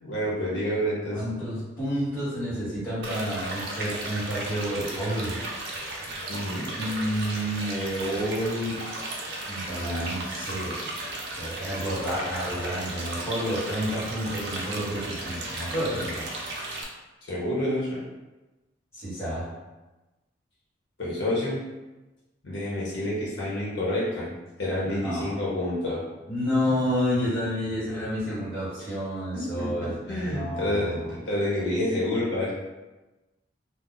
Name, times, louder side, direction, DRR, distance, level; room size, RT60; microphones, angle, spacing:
voice 1, 0.0-1.2 6.3-6.7 17.3-18.0 21.0-21.6 22.4-24.3 24.6-26.0 29.3-32.5, left 1 dB, 75° left, -7 dB, 0.9 m, -28 dB
voice 2, 1.1-5.4 6.7-8.8 9.5-10.7 11.4-16.3 18.9-19.5 24.8-25.4 26.3-31.1, equal, 15° left, -12 dB, 1.5 m, -30 dB
sound 1, 3.0-16.8, right 2 dB, 60° right, 0.6 m, -35 dB
2.5 x 2.1 x 3.9 m, 1.1 s
head